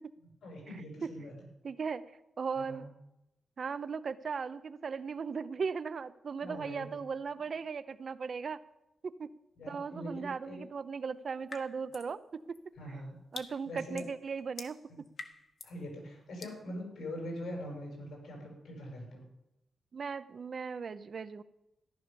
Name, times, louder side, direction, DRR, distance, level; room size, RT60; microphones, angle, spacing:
voice 1, 0.4-1.3 2.6-2.8 6.4-6.9 9.6-10.6 12.8-13.1 13.6-14.0 14.9-15.0 15.6-19.2, equal, 85° left, 1 dB, 6.7 m, -42 dB
voice 2, 1.6-2.0 2.4-2.8 3.6-8.6 9.0-9.3 9.7-12.6 13.3-14.8 19.9-21.4, right 5 dB, 50° right, 13 dB, 0.8 m, -37 dB
sound 1, 11.5-12.2 12.5-15.8 16.4-16.6, left 4 dB, 55° left, 1.5 m, -47 dB
14.5 x 11.0 x 7.0 m, 0.89 s
wide cardioid pair, 130°, 0 cm